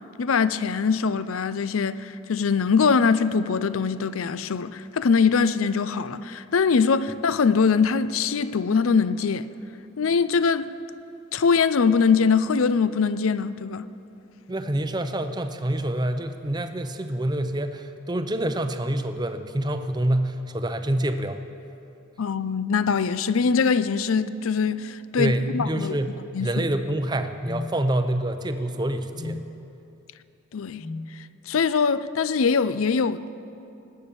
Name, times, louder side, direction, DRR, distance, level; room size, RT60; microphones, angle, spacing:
voice 1, 0.2-9.5 10.0-10.7 11.3-13.9 22.2-26.0 26.3-26.7 30.5-30.8 31.5-33.3, left 5 dB, 85° left, 0.5 m, -22 dB
voice 2, 14.5-21.4 25.2-29.4, right 1 dB, 20° right, 0.6 m, -27 dB
sound 1, 25.6-25.9 27.4-27.7 29.1-29.4 30.8-31.1, left 3 dB, 60° left, 2.8 m, -34 dB
19.5 x 8.8 x 6.9 m
head